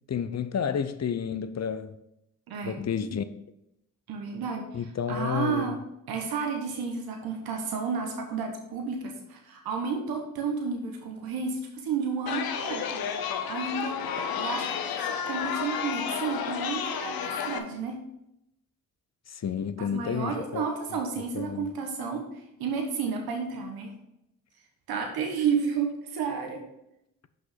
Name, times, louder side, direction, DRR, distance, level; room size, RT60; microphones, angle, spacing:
voice 1, 0.1-2.0 2.6-3.2 4.7-5.7 19.3-20.6 21.3-21.7, left 7 dB, 45° left, 0.7 m, -30 dB
voice 2, 2.5-2.8 4.1-4.8 5.1-5.8 6.1-13.0 13.5-14.0 14.3-18.0 19.8-23.9 24.9-26.6, right 5 dB, 85° right, 1.2 m, -31 dB
Chatter, 12.3-17.6, left 7 dB, 80° left, 0.8 m, -31 dB
5.9 x 5.4 x 5.7 m
supercardioid pair, 50°, 36 cm